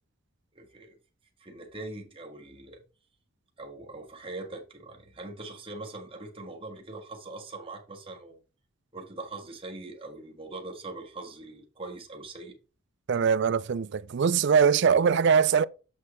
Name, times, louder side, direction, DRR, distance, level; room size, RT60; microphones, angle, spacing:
voice 1, 0.6-1.0 1.4-2.8 3.6-8.4 8.9-12.6, right 2 dB, 25° right, 1.8 m, -42 dB
voice 2, 13.1-15.6, right 6 dB, 55° right, 0.4 m, -22 dB
7.7 x 6.2 x 3.2 m
head